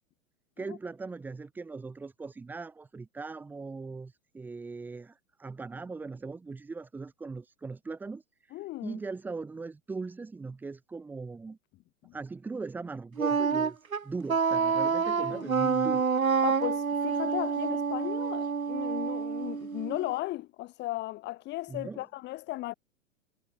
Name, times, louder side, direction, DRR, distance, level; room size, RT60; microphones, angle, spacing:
voice 1, 0.6-11.6 12.1-13.8 14.0-16.1 21.7-22.1, right 4 dB, 5° right, 0.6 m, -39 dB
voice 2, 8.5-9.0 12.0-12.1 15.2-15.5 16.4-22.7, left 17 dB, 25° left, 1.7 m, -36 dB
Wind instrument woodwind instrument, 13.2-20.1, right 6 dB, 85° right, 0.9 m, -28 dB
figure-of-eight pair, 105°, 41 cm